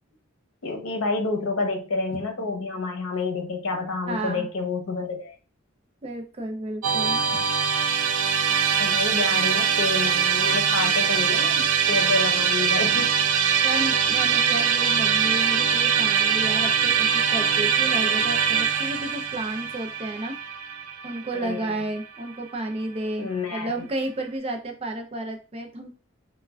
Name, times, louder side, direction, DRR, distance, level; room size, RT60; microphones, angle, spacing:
voice 1, 0.6-5.3 8.5-13.1 21.3-21.8 23.2-23.9, left 3 dB, 90° left, 4 dB, 0.7 m, -29 dB
voice 2, 4.1-4.5 6.0-7.4 13.6-20.3 21.0-25.9, right 1 dB, 30° right, 4 dB, 0.5 m, -32 dB
Musical instrument, 6.8-22.0, right 7 dB, 85° right, 0.3 m, -22 dB
3.2 x 2.2 x 2.3 m, 0.34 s
head